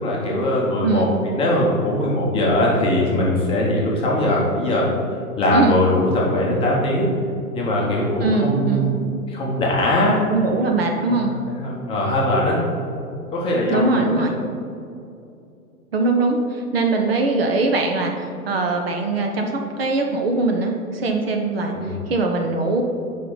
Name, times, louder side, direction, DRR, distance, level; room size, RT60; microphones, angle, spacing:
voice 1, 0.0-4.9 5.4-7.0 7.5-9.0 9.3-10.2 11.0-12.6 13.3-14.3 21.7-22.0, left 1 dB, 10° left, -4 dB, 0.9 m, -21 dB
voice 2, 8.2-8.9 10.3-11.3 13.7-14.3 15.9-18.1 18.5-21.7 22.1-22.8, right 3 dB, 40° right, 2 dB, 0.7 m, -21 dB
8.5 x 5.1 x 3.9 m, 2.5 s
figure-of-eight pair, 120°, 45 cm